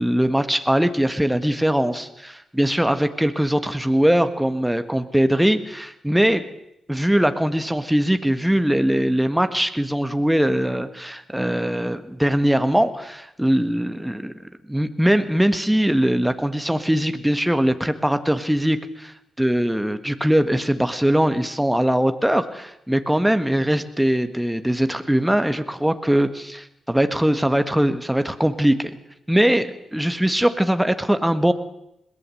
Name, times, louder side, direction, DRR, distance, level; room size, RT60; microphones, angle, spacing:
voice 1, 0.0-6.5 6.9-14.3 14.7-29.0 29.3-31.5, equal, 5° right, 9 dB, 1.7 m, -21 dB
21.5 x 17.0 x 7.9 m, 0.83 s
supercardioid pair, 55°, 0 cm